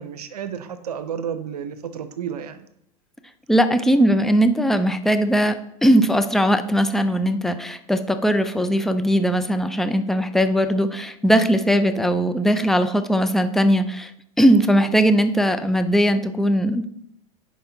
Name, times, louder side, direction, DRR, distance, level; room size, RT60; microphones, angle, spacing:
voice 1, 0.0-2.7, right 8 dB, 85° right, 11 dB, 0.6 m, -31 dB
voice 2, 3.5-14.1 14.4-16.9, equal, ahead, 9 dB, 0.4 m, -19 dB
10.0 x 4.5 x 2.7 m, 0.76 s
hypercardioid pair, 95°, 19 cm